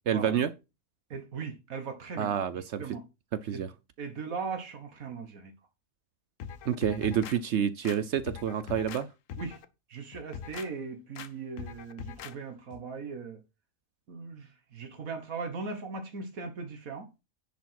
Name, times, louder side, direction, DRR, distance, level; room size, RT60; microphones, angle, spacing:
voice 1, 0.1-0.5 2.2-2.8 3.3-3.7 6.6-9.1, right 8 dB, 65° right, 0.8 m, -28 dB
voice 2, 1.1-2.3 2.8-3.0 3.5-3.6 4.0-5.5 9.4-9.6 9.9-13.4 14.1-17.1, right 4 dB, 80° right, 1.8 m, -39 dB
sound 1, 6.4-7.4 7.8-9.0 9.3-9.7 10.1-10.7 11.2-11.3 11.6-12.3 12.7-12.8, left 8 dB, 70° left, 1.1 m, -42 dB
10.0 x 4.7 x 5.9 m
omnidirectional pair, 1.4 m